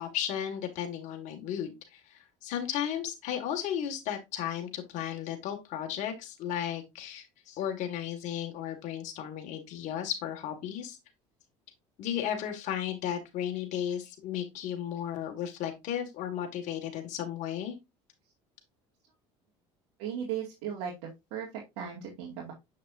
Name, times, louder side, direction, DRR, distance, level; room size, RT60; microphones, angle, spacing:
voice 1, 0.0-11.0 12.0-17.7, left 10 dB, 60° left, 4 dB, 2.0 m, -34 dB
voice 2, 20.0-22.5, right 8 dB, 80° right, -3 dB, 2.2 m, -37 dB
7.4 x 5.8 x 2.6 m, 0.22 s
supercardioid pair, 110°, 14 cm